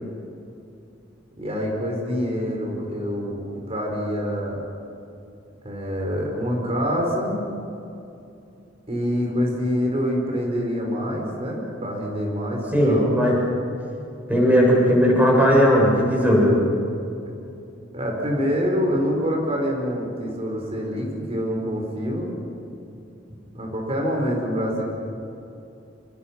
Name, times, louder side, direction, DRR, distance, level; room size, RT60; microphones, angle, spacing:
voice 1, 1.4-4.6 5.6-7.4 8.9-13.1 17.9-22.4 23.5-24.8, equal, 35° right, 0 dB, 4.8 m, -26 dB
voice 2, 12.7-13.4 14.3-16.5, equal, 10° right, -3 dB, 7.4 m, -17 dB
26.5 x 23.5 x 6.0 m, 2.7 s
head